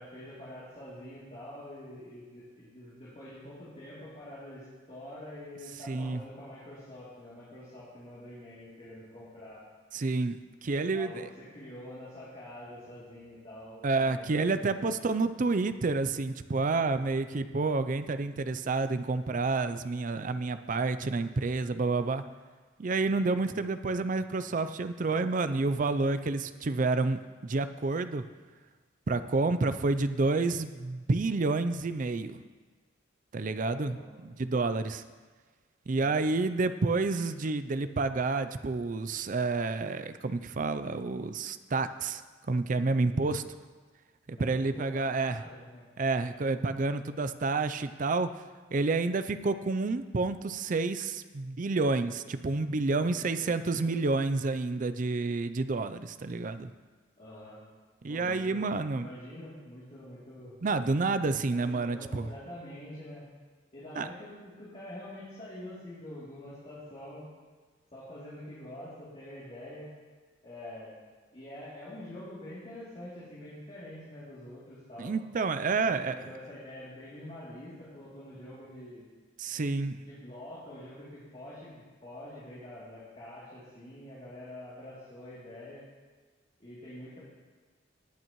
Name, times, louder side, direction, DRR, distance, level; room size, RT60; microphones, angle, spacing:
voice 1, 0.0-9.6 10.7-15.0 23.4-23.6 33.5-34.1 35.9-36.4 44.4-45.8 52.9-54.0 57.2-57.6 58.1-58.6 58.9-60.5 61.5-63.3 63.7-67.3 67.9-69.9 70.4-70.9 71.3-75.1 75.8-79.1 80.0-85.8 86.6-87.2, left 1 dB, 35° left, -10 dB, 2.8 m, -46 dB
voice 2, 5.9-6.2 9.9-11.3 13.8-22.2 22.8-28.3 29.1-32.4 33.3-35.0 35.9-42.2 42.5-43.4 44.3-45.4 46.0-48.3 48.7-56.7 58.0-59.1 60.6-62.3 64.0-64.1 75.0-76.3 79.4-80.0, right 3 dB, 40° right, 11 dB, 0.5 m, -29 dB
18.5 x 9.1 x 3.1 m, 1.4 s
head